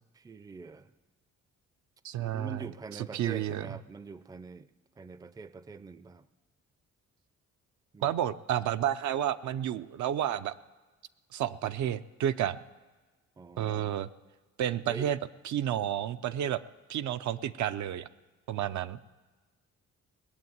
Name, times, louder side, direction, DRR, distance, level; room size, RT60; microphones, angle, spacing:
voice 1, 0.1-0.9 2.2-4.7 5.0-6.3 7.9-8.1 13.4-14.0 14.9-15.1, right 4 dB, 10° right, 16 dB, 0.4 m, -44 dB
voice 2, 2.0-2.6 2.9-3.7 8.0-10.5 11.3-12.6 13.6-14.1 14.6-15.2 15.4-16.6 16.9-18.1 18.5-19.0, right 11 dB, 70° right, 11 dB, 0.6 m, -31 dB
19.5 x 7.1 x 9.4 m, 1.3 s
cardioid pair, 90°, 30 cm